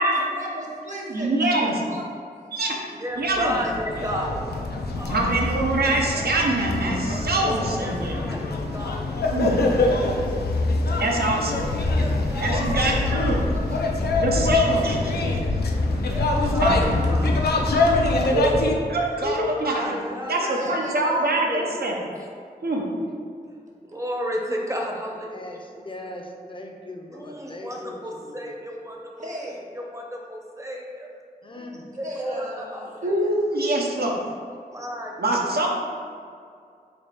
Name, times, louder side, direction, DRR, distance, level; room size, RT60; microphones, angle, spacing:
voice 1, 0.1-2.2 4.0-4.4 12.5-13.1 13.5-13.9 14.6-14.8 15.2-15.4 17.2-18.1 20.3-21.4 29.2-29.6 32.0-33.3, equal, 50° right, -3 dB, 0.8 m, -36 dB
voice 2, 1.1-1.8 2.5-2.8 3.2-3.6 5.1-8.2 9.3-9.5 11.0-11.6 12.4-13.4 14.2-15.3 16.6-17.2 18.3-18.5 18.9-19.9 20.3-22.0 22.6-22.8 33.0-34.2 35.2-35.7, right 2 dB, 80° right, -1 dB, 0.6 m, -24 dB
voice 3, 3.0-4.3 5.0-5.3 7.3-9.0 11.5-12.6 13.0-13.2 15.7-17.2 19.6-21.1 22.0-22.1 23.9-25.6 27.1-31.1 31.5-33.3 34.7-35.2 35.5-35.7, equal, 20° right, 0 dB, 0.6 m, -34 dB
sound 1, 3.3-18.7, left 2 dB, 90° left, 0.4 m, -24 dB
voice 4, 10.0-10.6 10.9-11.4 14.7-14.9 16.3-16.6 16.8-17.0 19.2-20.5 21.1-21.6 25.3-28.0 28.2-28.5 31.4-31.9, left 1 dB, 30° left, 2 dB, 0.5 m, -36 dB
3.3 x 2.9 x 4.3 m, 2.3 s
wide cardioid pair, 65°, 16 cm